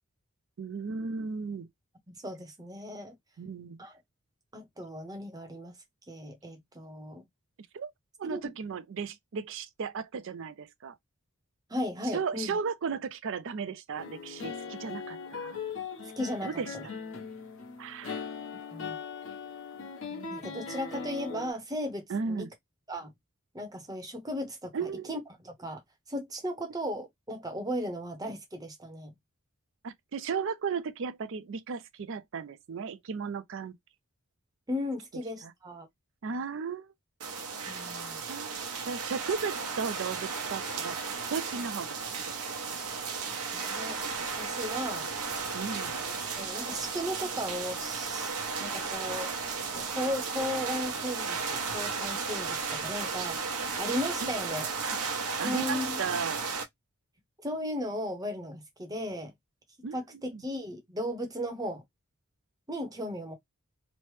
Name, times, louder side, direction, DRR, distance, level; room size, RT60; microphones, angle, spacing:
voice 1, 0.6-1.7 3.4-3.8 7.7-7.9 8.2-11.0 12.1-15.6 16.4-16.8 17.8-18.2 20.1-20.3 22.1-22.5 24.7-25.1 29.8-33.8 35.4-35.5 36.2-36.9 38.3-38.5 38.8-42.0 42.3-42.8 45.5-46.0 54.2-54.3 55.4-56.4 59.8-60.0 60.3-60.4, right 5 dB, 60° right, 0.4 m, -35 dB
voice 2, 2.1-3.1 3.8-4.0 4.5-5.7 6.1-7.2 8.3-8.4 11.7-12.6 16.2-16.9 18.7-19.0 20.3-22.5 22.9-23.1 23.5-25.8 26.1-29.1 34.7-35.9 37.7-38.2 43.5-44.0 44.4-45.1 46.4-48.3 48.6-49.3 49.7-54.7 55.4-56.0 57.4-59.3 59.9-61.8 62.7-63.4, equal, 15° right, 0.7 m, -36 dB
sound 1, 14.0-21.5, left 5 dB, 60° left, 1.0 m, -40 dB
sound 2, 37.2-56.6, right 5 dB, 85° right, 0.8 m, -34 dB
sound 3, 44.0-54.5, left 1 dB, 15° left, 0.9 m, -54 dB
3.1 x 2.0 x 3.1 m
head